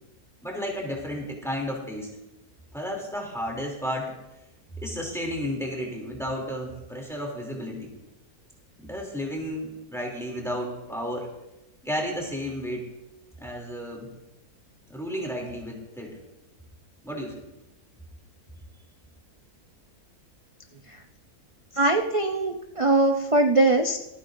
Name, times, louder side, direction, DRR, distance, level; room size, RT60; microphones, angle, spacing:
voice 1, 0.4-2.1 2.7-4.1 4.8-7.9 8.8-11.3 11.8-12.8 13.4-14.1 14.9-16.2 17.0-17.4, equal, ahead, -1 dB, 2.8 m, -32 dB
voice 2, 21.7-24.0, right 2 dB, 60° right, 4 dB, 0.3 m, -22 dB
26.0 x 9.2 x 2.6 m, 0.92 s
omnidirectional pair, 1.6 m